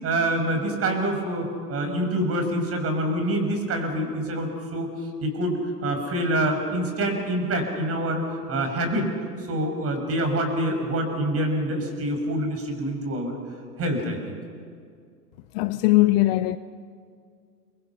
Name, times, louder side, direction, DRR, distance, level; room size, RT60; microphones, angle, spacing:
voice 1, 0.0-9.1 9.4-13.4 13.8-14.2, right 1 dB, 30° right, 6.1 m, -26 dB
voice 2, 15.5-16.6, left 18 dB, 40° left, 0.7 m, -20 dB
29.5 x 24.5 x 5.8 m
hypercardioid pair, 105°, 47 cm